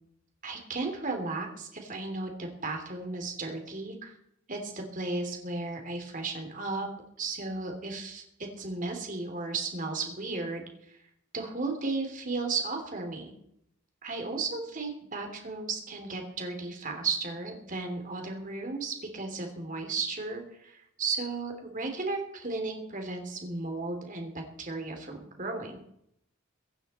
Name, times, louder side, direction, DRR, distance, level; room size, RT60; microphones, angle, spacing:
voice 1, 0.4-4.1 4.5-6.9 7.2-11.0 11.3-13.3 14.0-25.8, right 3 dB, 40° right, 3 dB, 3.2 m, -35 dB
23.0 x 10.5 x 4.4 m, 0.75 s
head